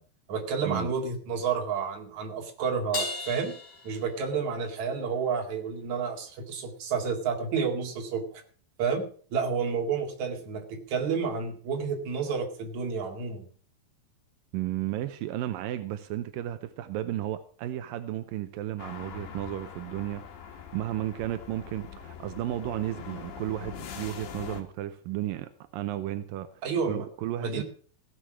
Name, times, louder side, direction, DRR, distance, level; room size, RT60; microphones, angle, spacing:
voice 1, 0.3-3.5 3.8-8.4 8.8-13.5 26.6-27.0 27.4-27.6, right 5 dB, 50° right, 3.2 m, -30 dB
Crash cymbal, 2.9-4.7, left 3 dB, 35° left, 5.5 m, -36 dB
voice 2, 14.5-26.5 26.9-27.6, right 13 dB, 80° right, 2.1 m, -33 dB
sound 1, 18.8-24.6, left 8 dB, 85° left, 4.1 m, -43 dB
16.5 x 8.2 x 6.1 m
omnidirectional pair, 4.9 m